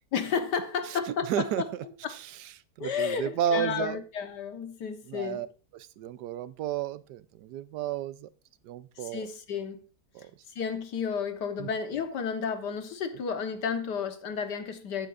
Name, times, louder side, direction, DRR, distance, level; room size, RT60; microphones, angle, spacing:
voice 1, 0.1-1.7 2.0-2.1 2.8-5.4 9.0-9.8 10.6-15.1, left 6 dB, 90° left, 1.8 m, -32 dB
voice 2, 1.3-1.6 2.1-2.3 2.8-4.0 5.1-5.5 6.0-8.3 8.6-9.2 10.1-10.3 11.6-11.7, right 11 dB, 80° right, 1.2 m, -32 dB
14.5 x 9.0 x 2.5 m
omnidirectional pair, 1.8 m